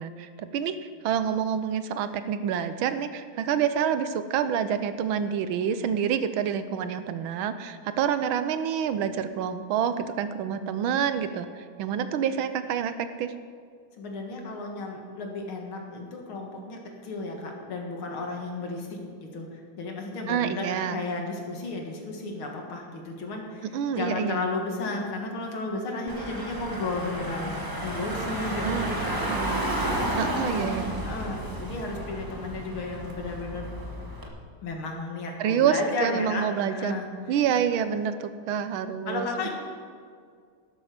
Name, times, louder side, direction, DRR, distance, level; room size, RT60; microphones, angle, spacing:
voice 1, 0.0-13.3 20.3-21.0 23.6-24.4 28.6-28.9 29.3-29.6 30.2-31.0 35.4-36.9 37.3-39.3, right 8 dB, 80° right, 11 dB, 1.5 m, -27 dB
voice 2, 14.0-23.7 23.9-29.3 29.9-33.7 34.6-37.1 39.1-39.5, left 3 dB, 80° left, 1 dB, 2.6 m, -34 dB
Car / Engine, 26.1-34.3, right 1 dB, 15° right, 1.1 m, -32 dB
12.0 x 12.0 x 5.0 m, 2.1 s
omnidirectional pair, 2.3 m